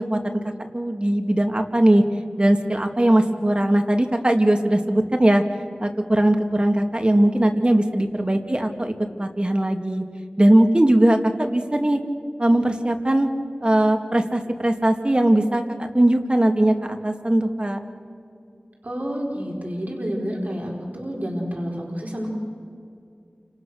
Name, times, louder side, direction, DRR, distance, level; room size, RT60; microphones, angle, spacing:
voice 1, 0.0-2.0 2.4-5.4 5.8-8.9 9.2-10.0 10.4-12.0 12.4-13.3 13.6-15.6 15.9-17.8, right 1 dB, 30° right, 5 dB, 2.1 m, -19 dB
voice 2, 18.8-22.3, equal, 55° right, -1 dB, 4.8 m, -29 dB
29.5 x 26.5 x 6.4 m, 2.5 s
wide cardioid pair, 55°, 3 cm